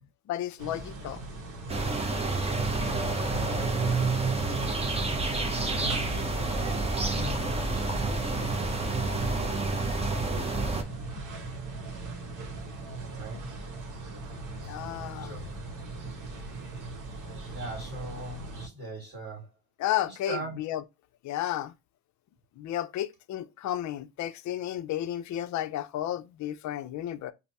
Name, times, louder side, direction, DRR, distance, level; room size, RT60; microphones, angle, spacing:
voice 1, 0.3-1.2 14.7-15.3 19.8-20.8 21.2-21.7 22.6-27.3, left 12 dB, 45° left, 0.5 m, -32 dB
sound 1, 0.6-18.7, right 3 dB, 45° right, 1.2 m, -37 dB
sound 2, 1.7-10.8, right 2 dB, 15° right, 0.7 m, -29 dB
voice 2, 5.6-8.6 13.2-13.5 14.5-14.7 15.1-15.6 17.4-19.5 20.1-20.6, right 2 dB, 30° right, 1.7 m, -41 dB
5.1 x 2.1 x 2.7 m
supercardioid pair, 95°, 41 cm